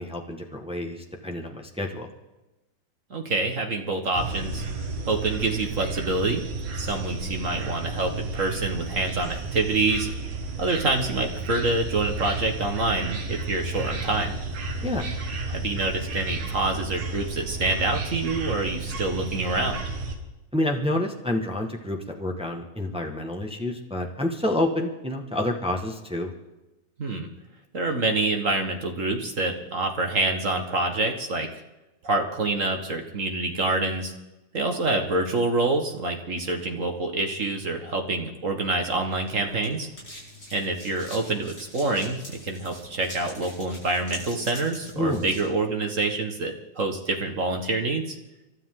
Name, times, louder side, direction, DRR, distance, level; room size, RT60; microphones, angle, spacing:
voice 1, 0.0-2.1 14.8-15.1 20.5-26.3 44.9-45.3, left 1 dB, 10° right, 2 dB, 0.3 m, -28 dB
voice 2, 3.1-4.6 5.1-6.4 6.7-10.1 10.6-14.4 15.5-19.8 27.0-27.3 27.7-31.5 32.0-34.1 34.5-39.9 40.5-42.2 42.4-48.2, right 2 dB, 40° right, 4 dB, 1.2 m, -26 dB
sound 1, 4.1-20.1, right 3 dB, 60° right, 3.1 m, -32 dB
sound 2, 38.8-45.5, left 1 dB, 25° left, 8.5 m, -44 dB
28.5 x 13.0 x 3.8 m, 1.0 s
omnidirectional pair, 3.4 m